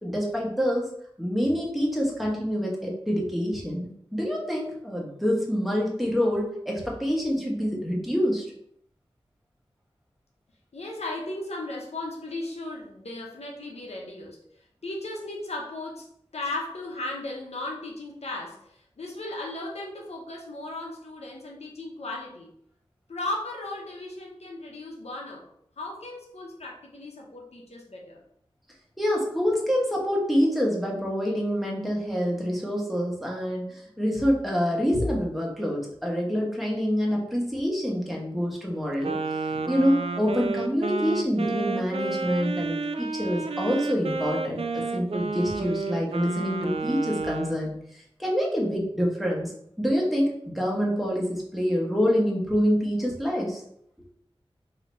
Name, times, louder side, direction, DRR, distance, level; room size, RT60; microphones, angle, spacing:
voice 1, 0.0-0.9 1.2-8.4 29.0-39.1 39.5-47.8 48.2-49.5 49.8-53.6, equal, ahead, -2 dB, 1.3 m, -26 dB
voice 2, 10.7-16.1 16.3-22.5 23.1-25.5 25.8-28.2, left 2 dB, 90° left, -1 dB, 0.9 m, -36 dB
Wind instrument woodwind instrument, 39.0-47.6, right 3 dB, 70° right, 0.4 m, -31 dB
3.9 x 2.9 x 4.3 m, 0.70 s
wide cardioid pair, 45°, 11 cm